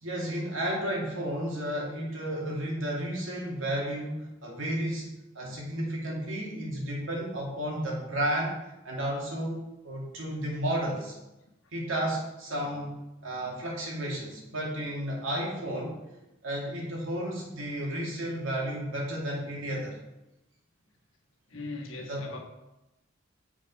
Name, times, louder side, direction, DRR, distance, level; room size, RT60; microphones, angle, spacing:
voice 1, 0.0-11.2 11.7-13.0 13.2-16.0 16.4-20.0 22.1-22.3, right 1 dB, 90° right, -3 dB, 2.5 m, -32 dB
voice 2, 21.5-22.4, left 2 dB, 80° left, 0 dB, 1.5 m, -39 dB
7.3 x 5.2 x 5.4 m, 0.97 s
head